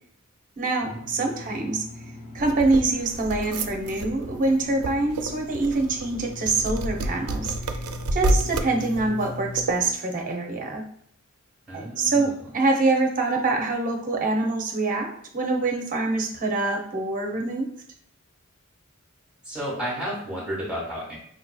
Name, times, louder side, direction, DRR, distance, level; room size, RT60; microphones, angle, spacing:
voice 1, 0.6-1.8 2.3-7.6 8.1-10.8 11.7-17.7, right 3 dB, 40° right, 2 dB, 0.7 m, -25 dB
sound 1, 0.9-9.7, left 2 dB, 35° left, 0.4 m, -40 dB
sound 2, 2.4-9.9, right 2 dB, 80° right, 0.4 m, -30 dB
voice 2, 11.7-12.3 19.4-21.1, equal, 5° right, -8 dB, 1.3 m, -32 dB
4.9 x 2.8 x 2.3 m, 0.69 s
head